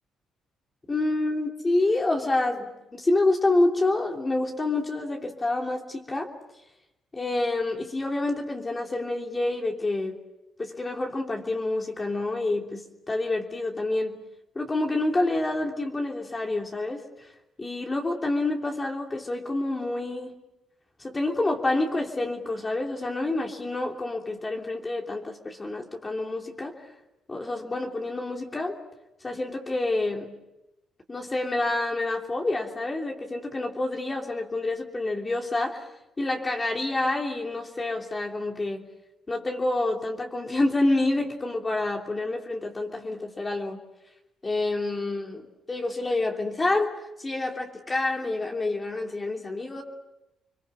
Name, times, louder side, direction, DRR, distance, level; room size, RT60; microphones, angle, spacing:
voice 1, 0.9-6.3 7.1-10.1 10.6-14.2 14.5-17.3 17.6-20.3 21.0-26.7 27.3-28.8 29.2-30.3 31.1-35.9 36.2-38.8 39.3-43.8 44.4-49.8, left 2 dB, 25° left, 1 dB, 3.1 m, -28 dB
30.0 x 22.5 x 7.6 m, 0.92 s
cardioid pair, 90°, 0 cm